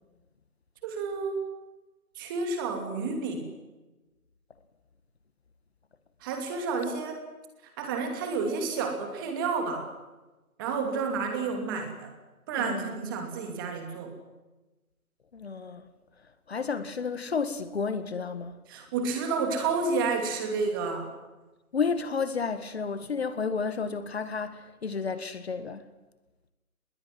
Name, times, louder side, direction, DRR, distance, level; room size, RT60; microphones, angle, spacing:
voice 1, 0.8-1.5 2.2-3.5 6.2-7.2 7.6-9.9 10.6-12.1 12.5-14.1 18.7-21.1, right 4 dB, 15° right, 2.7 m, -30 dB
voice 2, 12.5-12.8 15.3-15.8 16.5-18.6 21.7-25.9, left 5 dB, 45° left, 1.7 m, -31 dB
27.0 x 21.0 x 7.7 m
hypercardioid pair, 165°, 43 cm